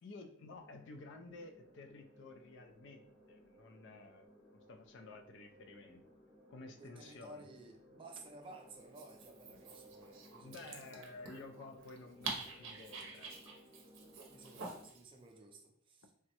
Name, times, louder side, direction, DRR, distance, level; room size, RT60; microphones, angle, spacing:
voice 1, 0.0-6.0 6.5-7.4 10.4-13.6, left 3 dB, 65° left, 6 dB, 0.4 m, -53 dB
sound 1, 0.5-14.9, equal, 15° left, 0.7 m, -61 dB
voice 2, 6.8-10.8 14.3-16.1, right 2 dB, 25° right, 3 dB, 0.4 m, -55 dB
Dog, 8.8-15.0, right 4 dB, 70° right, 0.6 m, -48 dB
3.4 x 2.0 x 2.8 m, 0.65 s
head